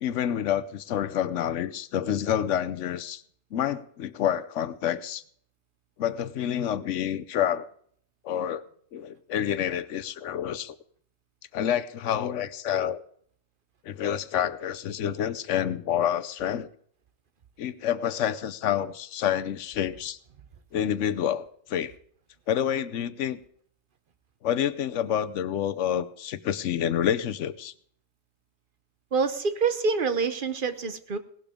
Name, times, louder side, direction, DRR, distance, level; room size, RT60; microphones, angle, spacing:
voice 1, 0.0-3.2 3.5-5.2 6.0-7.7 8.2-8.6 8.9-10.8 11.5-13.0 13.9-16.7 17.6-20.2 20.7-21.9 22.5-23.4 24.4-27.7, left 10 dB, 85° left, 14 dB, 1.0 m, -28 dB
voice 2, 29.1-31.2, right 5 dB, 50° right, 10 dB, 1.0 m, -26 dB
18.0 x 12.0 x 3.6 m, 0.63 s
omnidirectional pair, 1.2 m